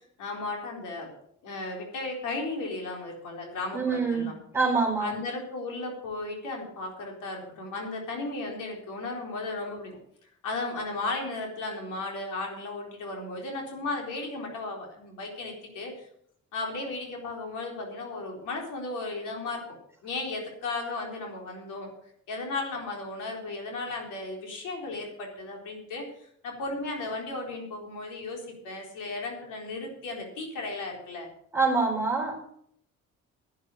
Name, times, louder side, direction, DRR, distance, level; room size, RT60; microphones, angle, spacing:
voice 1, 0.2-1.1 1.4-4.3 5.0-10.0 10.4-16.1 16.5-19.6 20.0-21.9 22.3-26.0 26.4-31.3, left 2 dB, 85° left, 1 dB, 4.1 m, -35 dB
voice 2, 3.7-5.2 31.5-32.4, right 4 dB, 10° right, -1 dB, 4.1 m, -26 dB
11.5 x 9.5 x 6.4 m, 0.70 s
cardioid pair, 90°, 30 cm